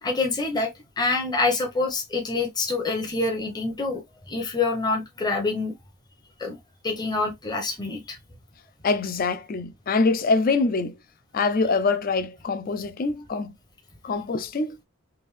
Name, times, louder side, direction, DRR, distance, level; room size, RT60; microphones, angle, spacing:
voice 1, 0.0-5.7 6.4-6.6 6.8-8.2, left 3 dB, 20° left, 0.8 m, -26 dB
voice 2, 8.8-11.0 11.3-13.5 14.0-14.8, left 3 dB, 45° left, 0.4 m, -24 dB
3.4 x 2.6 x 3.2 m
head